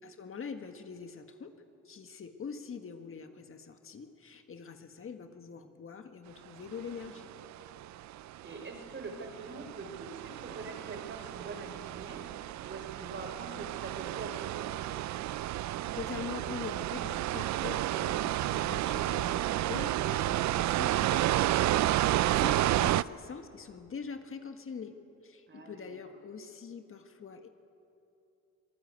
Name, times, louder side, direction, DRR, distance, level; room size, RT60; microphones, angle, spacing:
voice 1, 0.0-1.5 1.8-7.3 15.8-25.0 25.2-27.5, left 6 dB, 45° left, 6 dB, 1.7 m, -44 dB
sound 1, 6.9-23.0, right 14 dB, 65° right, 0.5 m, -31 dB
voice 2, 8.4-12.2 12.6-14.8 25.5-25.9, right 3 dB, 40° right, 4 dB, 4.8 m, -44 dB
25.5 x 18.5 x 8.3 m, 2.7 s
cardioid pair, 90°, 30 cm